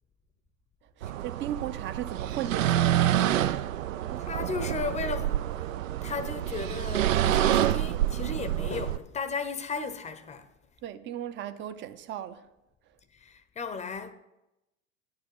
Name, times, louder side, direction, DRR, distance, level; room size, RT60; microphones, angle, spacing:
voice 1, 1.0-3.7 4.1-4.2 10.8-12.4, right 11 dB, 30° right, 0.6 m, -37 dB
sound 1, 1.0-9.0, right 12 dB, 70° right, 0.5 m, -27 dB
voice 2, 4.2-5.4 6.0-10.5 13.2-14.1, left 4 dB, 15° left, 0.7 m, -35 dB
10.0 x 4.8 x 7.5 m
figure-of-eight pair, 85°, 40 cm